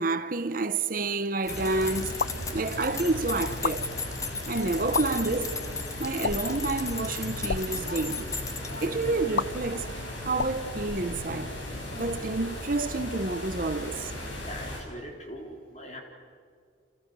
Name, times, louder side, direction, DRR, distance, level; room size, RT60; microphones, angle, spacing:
voice 1, 0.0-2.2 2.5-3.9 4.5-5.6 6.0-8.3 8.8-9.9 10.2-11.5 11.9-14.1, right 3 dB, 45° right, 1.0 m, -29 dB
sound 1, 1.4-9.2, left 5 dB, 15° left, 1.0 m, -37 dB
sound 2, 1.5-14.8, left 1 dB, 80° left, 6.5 m, -37 dB
sound 3, 2.2-2.5 3.5-3.8 4.8-5.1 6.2-6.6 7.4-7.7 9.4-9.5 10.3-11.5, left 5 dB, 65° left, 0.6 m, -31 dB
voice 2, 14.4-16.0, equal, 35° left, 3.8 m, -41 dB
29.5 x 28.0 x 6.3 m
head